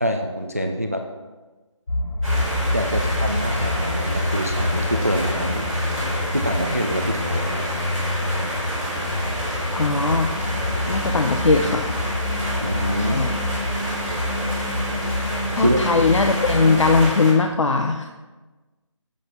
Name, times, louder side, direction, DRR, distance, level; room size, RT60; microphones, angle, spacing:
voice 1, 0.0-1.0 2.7-5.7 6.3-7.6 12.6-13.2 15.6-15.8, equal, 30° right, 4 dB, 0.3 m, -25 dB
sound 1, 1.9-17.0, left 2 dB, 50° left, 1.1 m, -27 dB
sound 2, 2.2-17.3, equal, ahead, 1.8 m, -29 dB
voice 2, 9.7-10.3 10.9-11.9 13.1-13.4 15.6-18.1, left 4 dB, 65° left, 5 dB, 0.6 m, -19 dB
7.7 x 7.6 x 4.4 m, 1.2 s
figure-of-eight pair, 175°, 17 cm